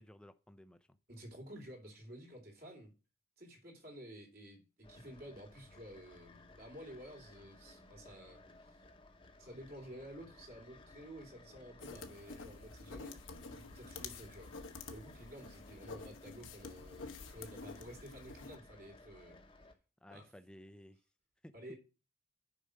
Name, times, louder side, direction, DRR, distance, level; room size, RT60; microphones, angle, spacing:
voice 1, 0.0-1.0 20.0-21.0 21.4-21.5, left 1 dB, 5° left, 0.5 m, -56 dB
voice 2, 1.1-2.9 3.4-8.9 9.4-14.5 14.9-19.6 20.1-20.3 21.5-21.7, equal, 50° right, 2.9 m, -52 dB
sound 1, 4.8-19.7, left 2 dB, 25° left, 0.9 m, -59 dB
sound 2, 11.8-18.6, left 4 dB, 80° left, 1.0 m, -49 dB
6.7 x 5.0 x 6.5 m
head